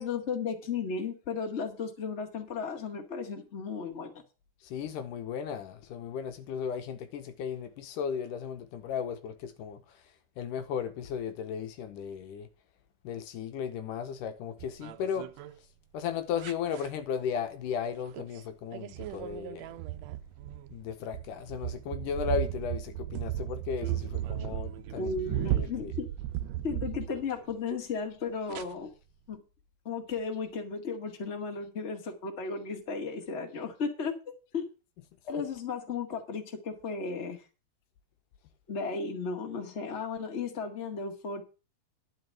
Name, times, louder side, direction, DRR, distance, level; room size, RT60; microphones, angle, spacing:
voice 1, 0.0-4.1 25.0-26.1 26.6-28.9 29.3-29.4 29.9-34.1 34.5-34.7 35.3-37.4 38.7-41.4, left 5 dB, 25° left, 1.7 m, -35 dB
voice 2, 4.6-10.0 10.4-12.5 13.0-15.3 15.9-19.8 20.7-25.2 25.5-25.9, left 7 dB, 80° left, 2.5 m, -35 dB
sound 1, 14.6-15.5 16.4-16.9 18.1-18.4 18.7-27.5 28.5-28.6, right 14 dB, 85° right, 1.5 m, -35 dB
11.5 x 5.2 x 7.5 m
omnidirectional pair, 3.8 m